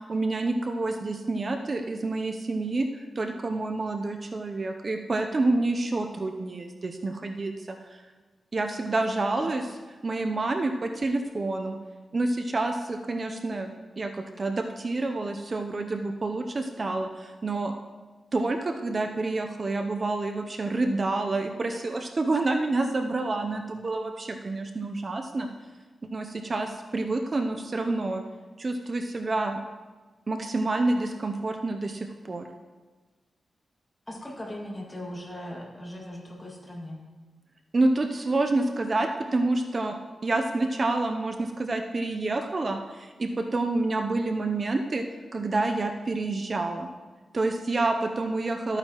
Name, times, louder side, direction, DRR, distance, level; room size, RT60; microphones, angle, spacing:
voice 1, 0.1-8.0 8.5-9.6 10.0-11.8 12.1-17.7 18.3-25.5 26.0-28.2 28.6-29.6 30.3-32.5 37.7-45.0 45.3-46.9 47.3-48.8, right 2 dB, 35° right, 5 dB, 0.6 m, -28 dB
voice 2, 34.1-37.0, left 1 dB, 20° left, -2 dB, 2.0 m, -38 dB
13.0 x 8.9 x 3.0 m, 1.3 s
wide cardioid pair, 110°, 0 cm